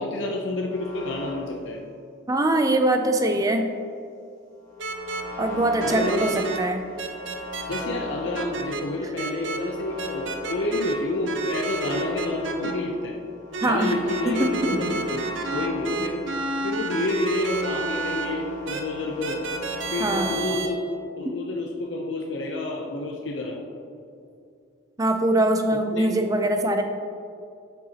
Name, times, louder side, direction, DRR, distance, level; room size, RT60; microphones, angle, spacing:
voice 1, 0.0-1.8 5.8-6.5 7.7-13.2 13.6-15.2 15.5-16.2 16.6-19.4 19.9-20.8 21.2-23.6 25.9-26.1, left 2 dB, 65° left, 0 dB, 0.7 m, -29 dB
sound 1, 0.7-1.5 4.6-20.4, left 2 dB, 20° left, 1.5 m, -39 dB
voice 2, 2.3-3.7 5.4-6.9 13.6-14.0 14.2-14.9 20.0-20.6 21.2-21.4 25.0-26.8, right 1 dB, 15° right, 5 dB, 0.4 m, -23 dB
sound 2, 4.8-5.2 5.8-6.6 7.0-7.8 8.3-8.8 9.2-9.6 10.0-10.9 11.2-12.7 13.5-18.3 18.7-18.8 19.2-20.7, right 4 dB, 70° right, 0.7 m, -30 dB
7.6 x 6.9 x 2.9 m, 2.4 s
head